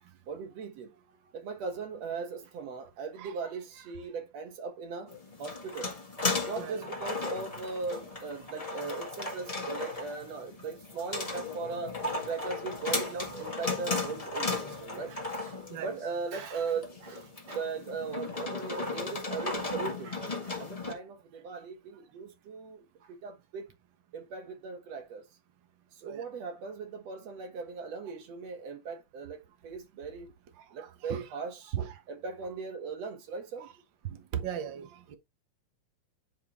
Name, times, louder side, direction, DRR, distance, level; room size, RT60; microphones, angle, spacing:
voice 1, 0.3-0.9 1.3-5.1 5.4-6.0 6.4-12.0 12.2-15.6 15.8-23.7 24.1-25.3 26.0-30.3 30.7-31.8 32.1-33.7, right 5 dB, 55° right, 2.2 m, -39 dB
sound 1, 5.1-20.9, left 3 dB, 55° left, 0.4 m, -36 dB
voice 2, 30.6-31.2 31.7-32.0 34.0-35.1, right 9 dB, 80° right, 1.0 m, -37 dB
9.8 x 4.5 x 3.0 m
omnidirectional pair, 3.9 m